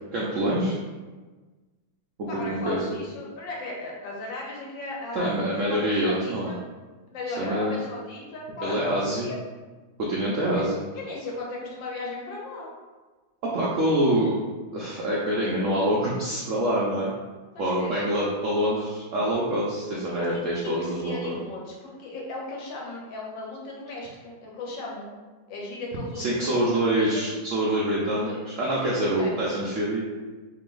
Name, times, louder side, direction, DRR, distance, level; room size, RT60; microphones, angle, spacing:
voice 1, 0.1-0.8 2.2-3.0 5.1-6.6 7.4-7.8 8.6-9.3 10.0-10.8 13.4-14.3 14.7-17.1 17.6-21.3 26.2-30.0, right 1 dB, 75° right, -5 dB, 0.7 m, -25 dB
voice 2, 2.3-6.6 7.1-8.8 9.2-9.4 10.5-10.7 10.9-12.7 17.5-18.0 20.3-25.1 25.5-27.2 28.1-28.4 28.6-29.6, left 2 dB, 80° left, -2 dB, 1.5 m, -37 dB
3.3 x 2.9 x 3.8 m, 1.3 s
omnidirectional pair, 2.0 m